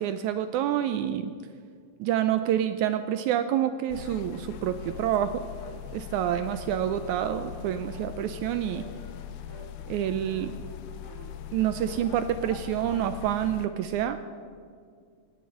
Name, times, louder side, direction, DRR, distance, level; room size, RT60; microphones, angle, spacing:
voice 1, 0.0-1.3 2.0-5.4 5.9-8.8 9.9-10.5 11.5-14.3, right 10 dB, 80° right, 11 dB, 1.7 m, -28 dB
sound 1, 3.9-13.7, left 10 dB, 85° left, 2.5 m, -41 dB
sound 2, 4.8-5.0 5.6-5.8 6.3-6.6 7.1-7.4 7.9-8.1 8.7-8.9 9.5-9.7 10.2-10.5 11.0-11.3 11.8-12.1 12.6-12.7, right 4 dB, 65° right, 4.7 m, -48 dB
18.0 x 7.2 x 9.6 m, 2.1 s
omnidirectional pair, 4.0 m